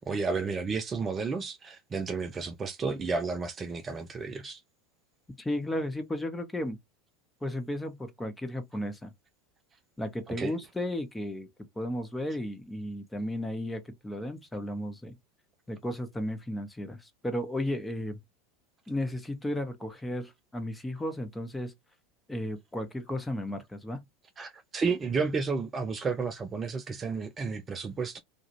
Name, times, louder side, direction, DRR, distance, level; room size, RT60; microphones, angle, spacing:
voice 1, 0.1-4.6 10.4-10.5 24.4-28.2, right 4 dB, 25° right, 0.4 m, -32 dB
voice 2, 5.4-6.8 7.4-9.1 10.0-11.5 11.8-15.2 15.7-18.2 18.9-21.7 22.3-24.0, left 1 dB, 10° left, 0.9 m, -34 dB
2.5 x 2.4 x 3.0 m
hypercardioid pair, 85°, 0 cm